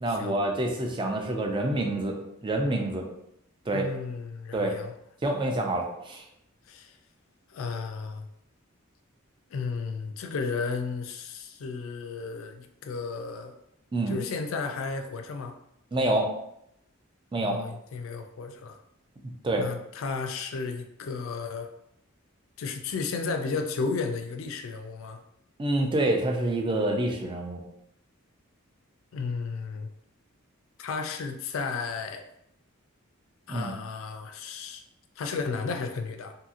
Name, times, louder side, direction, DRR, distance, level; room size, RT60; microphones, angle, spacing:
voice 1, 0.0-2.2 2.4-3.1 3.7-3.9 4.5-4.7 5.2-6.2 13.9-14.2 15.9-16.3 17.3-17.6 19.4-19.7 25.6-27.6 33.5-33.7, right 1 dB, 25° right, 2 dB, 0.4 m, -27 dB
voice 2, 3.7-4.9 6.7-7.0 7.5-8.3 9.5-13.5 14.1-15.6 17.4-18.8 19.6-21.7 22.6-25.2 29.1-29.9 30.8-32.3 33.5-34.8 35.2-36.3, left 4 dB, 70° left, 6 dB, 0.4 m, -33 dB
2.8 x 2.7 x 2.5 m, 0.76 s
head